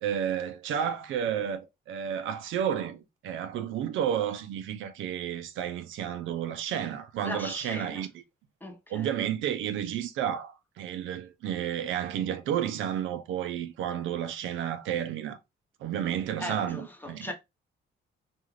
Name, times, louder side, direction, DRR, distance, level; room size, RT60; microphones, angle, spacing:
voice 1, 0.0-8.2 8.9-15.4 15.8-17.3, right 9 dB, 80° right, 0.4 m, -31 dB
voice 2, 7.2-8.0 8.6-9.1 16.4-17.3, left 1 dB, 10° left, 0.8 m, -38 dB
2.4 x 2.4 x 3.0 m
cardioid pair, 90°, 20 cm